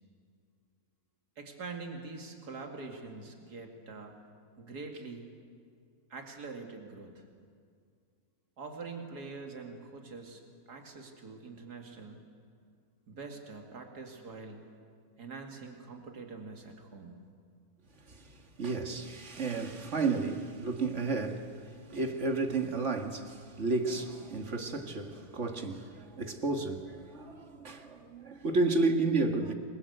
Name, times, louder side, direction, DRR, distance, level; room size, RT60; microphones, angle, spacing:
voice 1, 1.4-4.3 4.6-5.2 6.1-7.2 8.6-10.4 10.7-12.3 13.1-14.7 15.2-17.2, right 4 dB, 80° right, 3 dB, 2.8 m, -44 dB
voice 2, 18.1-29.5, right 3 dB, 50° right, 5 dB, 2.1 m, -32 dB
27.5 x 22.5 x 8.0 m, 2.2 s
omnidirectional pair, 1.7 m